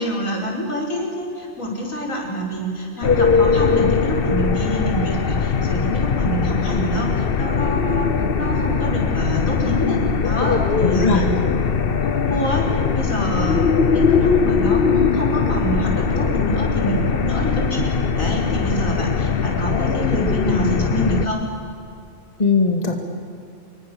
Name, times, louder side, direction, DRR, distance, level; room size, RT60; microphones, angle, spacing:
voice 1, 0.0-8.1 8.4-11.6 12.0-17.9 18.2-21.4, equal, 85° left, -1 dB, 5.7 m, -26 dB
sound 1, 3.0-21.3, left 5 dB, 50° left, 1.2 m, -20 dB
voice 2, 10.8-11.3 22.4-22.9, left 4 dB, 30° left, 3 dB, 2.2 m, -19 dB
26.5 x 24.0 x 7.1 m, 2.5 s
omnidirectional pair, 1.4 m